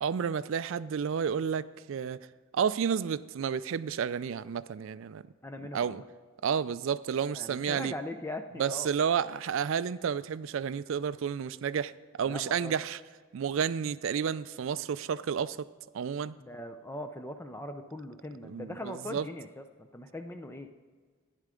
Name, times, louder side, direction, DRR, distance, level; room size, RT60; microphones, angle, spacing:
voice 1, 0.0-2.2 2.5-5.2 5.7-6.0 6.4-7.9 8.6-11.9 12.2-13.0 13.3-15.7 15.9-16.4 18.4-19.3, right 7 dB, 60° right, 15 dB, 0.3 m, -31 dB
voice 2, 5.4-6.0 7.3-8.9 12.3-12.7 16.4-20.7, left 1 dB, 10° left, 7 dB, 0.4 m, -40 dB
11.0 x 10.0 x 3.7 m, 1.5 s
head